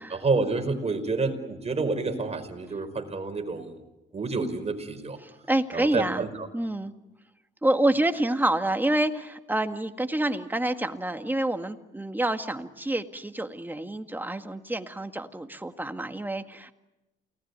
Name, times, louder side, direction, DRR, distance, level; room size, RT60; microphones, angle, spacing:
voice 1, 0.1-3.8 4.1-5.2 5.7-6.5, right 3 dB, 30° right, 6 dB, 5.0 m, -29 dB
voice 2, 5.2-6.3 6.5-6.9 7.6-16.7, right 1 dB, 10° right, 7 dB, 1.9 m, -28 dB
29.0 x 19.5 x 9.6 m, 1.0 s
cardioid pair, 90°, 20 cm